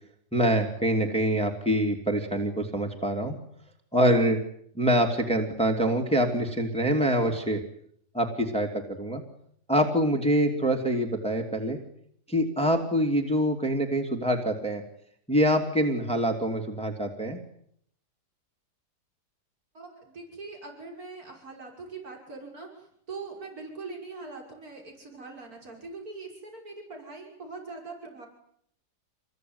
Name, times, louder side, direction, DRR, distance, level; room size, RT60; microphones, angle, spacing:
voice 1, 0.3-3.4 3.9-4.4 4.8-7.6 8.1-8.7 9.0-9.2 9.7-11.8 12.3-14.8 15.3-17.4, equal, 5° left, 3 dB, 2.8 m, -25 dB
voice 2, 19.7-28.3, right 3 dB, 55° right, 1 dB, 6.4 m, -42 dB
27.5 x 21.0 x 9.6 m, 0.70 s
omnidirectional pair, 1.8 m